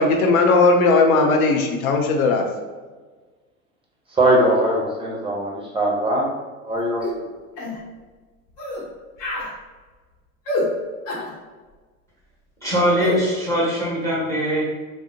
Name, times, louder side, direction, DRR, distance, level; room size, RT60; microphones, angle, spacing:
voice 1, 0.0-2.5, left 3 dB, 80° left, 3 dB, 0.6 m, -17 dB
voice 2, 4.1-6.3 6.6-7.3, right 1 dB, 15° right, -2 dB, 0.7 m, -21 dB
goblin fighting, 7.0-7.2 7.6-7.8 8.6-8.8 9.2-9.5 10.5-10.7 11.1-11.3 13.0-13.2, left 2 dB, 50° left, 1.0 m, -26 dB
voice 3, 12.6-14.6, equal, 5° left, -6 dB, 1.1 m, -21 dB
3.4 x 2.1 x 2.7 m, 1.3 s
hypercardioid pair, 95°, 42 cm